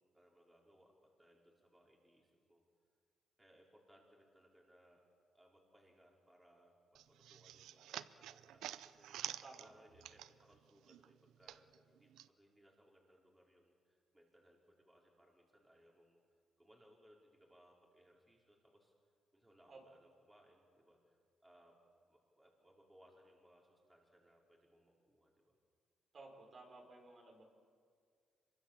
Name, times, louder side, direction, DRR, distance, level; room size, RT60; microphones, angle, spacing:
voice 1, 0.0-2.6 3.4-5.0 5.3-18.9 19.3-21.7 22.1-25.5, equal, 10° right, -2 dB, 5.0 m, -68 dB
sound 1, 6.9-10.6 10.9-12.3, right 12 dB, 85° right, 0.6 m, -49 dB
voice 2, 26.1-27.4, right 3 dB, 45° right, 1 dB, 5.4 m, -56 dB
25.5 x 23.5 x 7.5 m, 2.1 s
cardioid pair, 90°, 0 cm